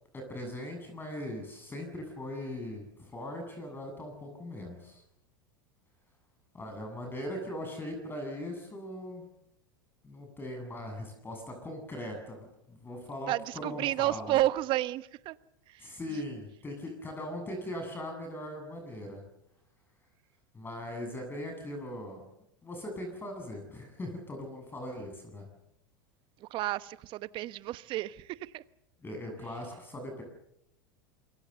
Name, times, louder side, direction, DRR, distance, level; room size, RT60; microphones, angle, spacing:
voice 1, 0.1-5.0 6.5-9.2 10.0-13.3 13.6-14.4 15.8-19.2 20.5-22.2 22.6-25.5 29.0-30.2, left 1 dB, 20° left, 5 dB, 7.8 m, -40 dB
voice 2, 13.3-15.4 15.7-16.2 26.4-28.6, right 15 dB, 45° right, 16 dB, 1.1 m, -31 dB
26.5 x 23.5 x 6.8 m, 0.80 s
hypercardioid pair, 95°, 11 cm